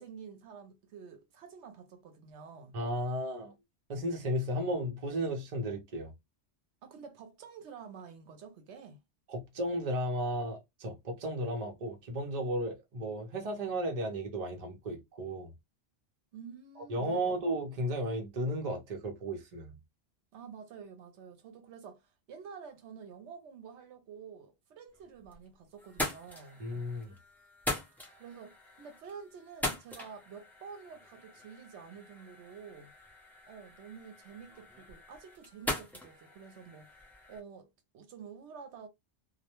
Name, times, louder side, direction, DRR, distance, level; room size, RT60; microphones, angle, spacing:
voice 1, 0.0-2.7 6.8-9.0 16.3-17.4 20.3-22.0 22.3-26.6 28.2-32.9 33.5-37.0 37.3-37.7 37.9-38.9, right 6 dB, 75° right, 0.9 m, -49 dB
voice 2, 2.7-3.5 3.9-6.1 9.3-15.5 16.8-19.8 26.6-27.2, equal, 40° right, 0.7 m, -34 dB
sound 1, 24.9-25.5 25.8-37.4, left 1 dB, ahead, 0.5 m, -41 dB
2.3 x 2.1 x 2.8 m
omnidirectional pair, 1.2 m